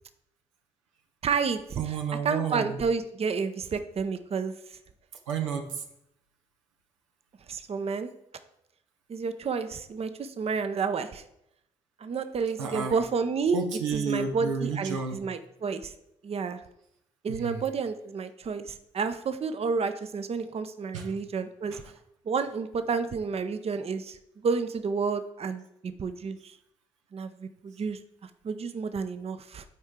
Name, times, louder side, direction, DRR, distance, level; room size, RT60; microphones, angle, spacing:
voice 1, 1.2-2.0 2.2-4.5 7.5-8.1 9.1-11.2 12.0-13.6 13.9-15.9 16.2-16.6 17.2-21.8 22.3-24.2 24.4-26.5 27.1-28.0 28.4-29.6, right 5 dB, 40° right, 10 dB, 0.7 m, -30 dB
voice 2, 1.8-2.8 5.3-5.8 12.6-13.0 13.5-15.2 17.3-17.6 20.9-21.1 21.7-21.8, right 6 dB, 90° right, 3 dB, 0.7 m, -31 dB
9.4 x 4.5 x 3.7 m, 0.79 s
hypercardioid pair, 45°, 16 cm